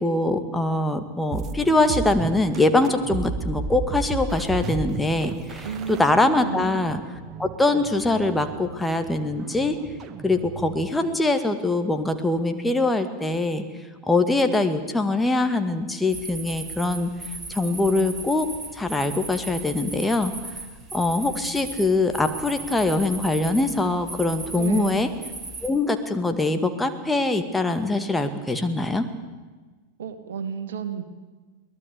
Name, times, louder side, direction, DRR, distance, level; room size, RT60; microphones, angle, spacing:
voice 1, 0.0-7.0 7.4-9.8 10.2-13.6 14.1-17.1 17.5-18.5 18.7-20.3 20.9-25.1 25.6-29.1, left 2 dB, 5° left, 7 dB, 2.2 m, -23 dB
sound 1, 1.3-11.0, right 4 dB, 30° right, 1.6 m, -34 dB
voice 2, 5.6-6.7 24.5-25.0 30.0-31.0, right 7 dB, 60° right, 9 dB, 2.3 m, -32 dB
sound 2, 16.1-25.7, right 3 dB, 15° right, 5.0 m, -37 dB
23.0 x 19.0 x 8.5 m, 1.3 s
figure-of-eight pair, 90°, 0 cm